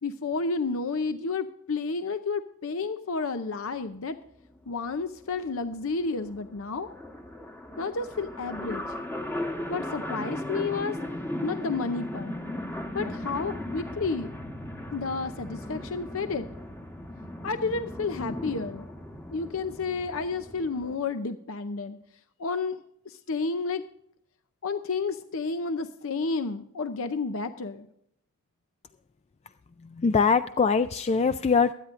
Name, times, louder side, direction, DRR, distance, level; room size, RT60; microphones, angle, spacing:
voice 1, 0.0-4.2 4.7-6.9 7.8-8.8 9.7-11.0 11.4-12.3 12.9-14.3 14.9-16.5 17.4-18.9 19.3-22.0 22.4-23.8 24.6-27.9, left 4 dB, 65° left, 10 dB, 0.6 m, -31 dB
sound 1, 4.4-4.6 4.9-5.0 5.1-21.0, left 1 dB, 10° left, 1.2 m, -37 dB
voice 2, 29.8-31.7, left 5 dB, 30° left, 11 dB, 0.3 m, -23 dB
23.0 x 9.7 x 2.5 m, 0.71 s
head